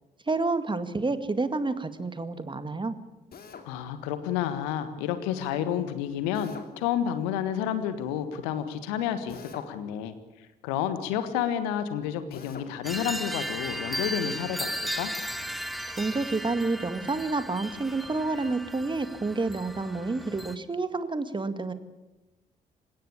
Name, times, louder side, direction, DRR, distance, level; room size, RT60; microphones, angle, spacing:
voice 1, 0.3-3.0 15.9-21.7, right 3 dB, 25° right, 11 dB, 2.0 m, -29 dB
Drill, 3.3-3.7 6.3-6.7 9.3-9.7 12.3-12.7, left 6 dB, 50° left, 3.0 m, -44 dB
voice 2, 3.6-10.1 10.6-15.1, left 9 dB, 70° left, 11 dB, 1.6 m, -30 dB
sound 1, 12.8-20.5, equal, ahead, 1.8 m, -36 dB
27.5 x 16.5 x 8.6 m, 1.1 s
figure-of-eight pair, 40°, 20 cm